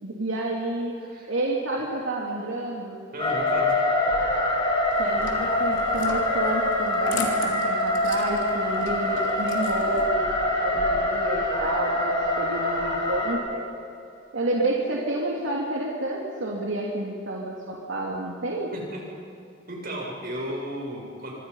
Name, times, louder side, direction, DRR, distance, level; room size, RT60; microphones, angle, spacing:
voice 1, 0.0-1.0 1.3-3.0 5.0-13.7 14.3-18.7, right 2 dB, 80° right, -3 dB, 2.9 m, -30 dB
voice 2, 1.0-1.3 3.1-3.8 18.7-19.0 19.7-21.3, right 1 dB, 50° right, -1 dB, 7.3 m, -34 dB
sound 1, 3.2-13.3, left 1 dB, 30° left, 5.0 m, -25 dB
sound 2, 4.9-10.1, left 4 dB, 75° left, 3.3 m, -38 dB
26.0 x 24.5 x 5.7 m, 2.6 s
head